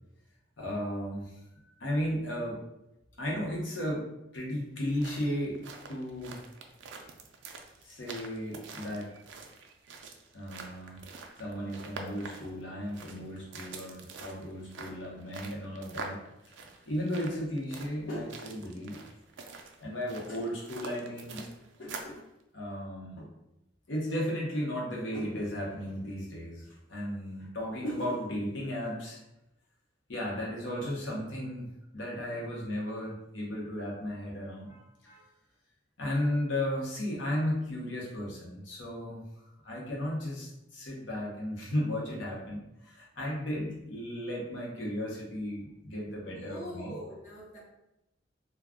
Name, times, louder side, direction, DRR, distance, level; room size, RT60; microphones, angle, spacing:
voice 1, 0.6-1.3 1.8-2.6 3.2-4.1 4.3-5.6 5.9-6.4 7.8-9.1 10.3-11.0 11.4-16.2 16.9-19.0 19.8-21.4 21.8-22.2 22.5-23.3 23.9-29.2 30.1-31.7 31.9-35.2 36.0-47.0, equal, 75° left, -3 dB, 0.8 m, -35 dB
sound 1, 4.8-22.2, right 4 dB, 70° right, 0.4 m, -46 dB
voice 2, 46.3-47.6, equal, 40° left, -5 dB, 0.7 m, -43 dB
2.3 x 2.2 x 3.6 m, 0.88 s
head